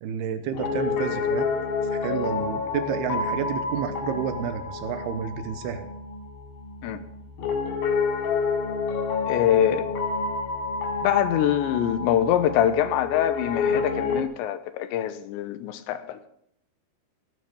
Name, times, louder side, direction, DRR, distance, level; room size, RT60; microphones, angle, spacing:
voice 1, 0.0-1.5 1.9-5.9, right 8 dB, 75° right, 9 dB, 2.7 m, -30 dB
Piano, 0.5-14.2, left 4 dB, 65° left, 3.4 m, -29 dB
voice 2, 9.3-9.9 11.0-16.2, left 10 dB, 90° left, 11 dB, 3.2 m, -24 dB
17.5 x 8.8 x 5.3 m, 0.74 s
omnidirectional pair, 5.0 m